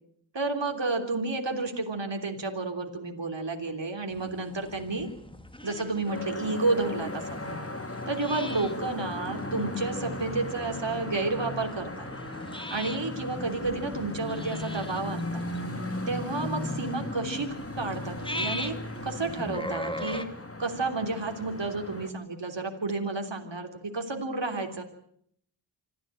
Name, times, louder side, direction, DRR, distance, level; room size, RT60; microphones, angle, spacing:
voice 1, 0.3-5.1 5.6-7.6 8.1-12.1 12.7-15.4 16.1-17.5 17.8-18.7 19.0-20.2 20.6-24.8, right 3 dB, 65° right, 4 dB, 3.4 m, -31 dB
sound 1, 4.1-20.3, left 1 dB, 10° left, 2.3 m, -41 dB
sound 2, 6.1-22.1, left 1 dB, 30° left, 2.6 m, -36 dB
26.0 x 14.5 x 9.1 m, 0.68 s
wide cardioid pair, 45°, 46 cm